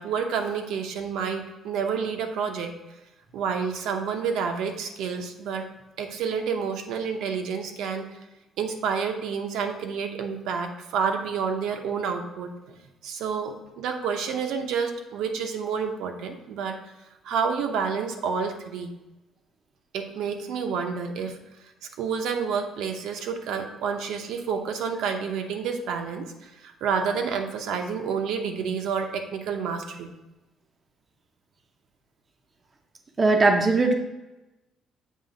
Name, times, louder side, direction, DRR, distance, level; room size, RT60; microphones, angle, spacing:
voice 1, 0.0-2.7 3.3-5.6 6.0-8.1 8.6-16.8 17.2-18.9 19.9-21.4 22.0-30.1, right 6 dB, 75° right, 4 dB, 0.7 m, -29 dB
voice 2, 33.2-33.9, right 3 dB, 20° right, 3 dB, 0.6 m, -19 dB
7.5 x 3.2 x 5.1 m, 1.0 s
cardioid pair, 170°, 0 cm